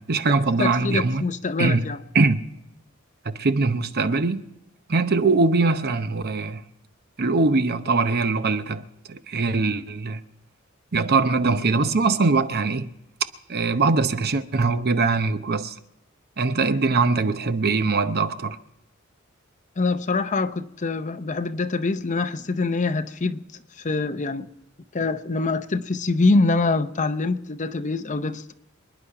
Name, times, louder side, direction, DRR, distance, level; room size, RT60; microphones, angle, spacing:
voice 1, 0.0-1.2 1.6-1.8 2.1-2.4 3.2-4.4 4.9-6.6 7.2-10.2 10.9-12.9 13.5-15.7 16.4-18.6, right 3 dB, 50° right, 0.8 m, -22 dB
voice 2, 0.6-2.0 19.8-23.4 23.8-24.5 24.9-28.5, left 3 dB, 35° left, 0.7 m, -24 dB
27.0 x 10.0 x 4.8 m
head